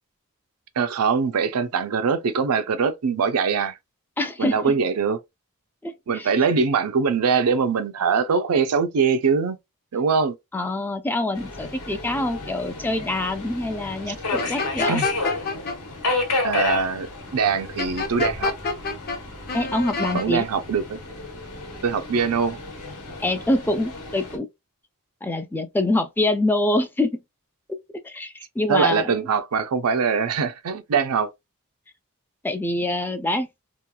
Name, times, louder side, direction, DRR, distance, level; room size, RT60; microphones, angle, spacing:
voice 1, 0.8-3.7 4.4-5.2 6.1-9.6 9.9-10.4 14.9-15.1 16.4-18.5 20.1-21.0 21.8-22.6 28.7-31.3, right 5 dB, 80° right, 0.5 m, -22 dB
voice 2, 4.2-4.7 5.8-6.3 10.5-15.0 19.5-20.5 23.2-24.5 25.2-27.1 28.0-29.1 32.4-33.5, left 1 dB, 10° left, 0.3 m, -25 dB
Subway metro underground, 11.3-24.4, left 3 dB, 80° left, 1.0 m, -32 dB
sound 1, 14.4-15.8 17.8-19.2 19.5-20.3, left 3 dB, 45° left, 0.7 m, -27 dB
2.9 x 2.3 x 2.2 m
head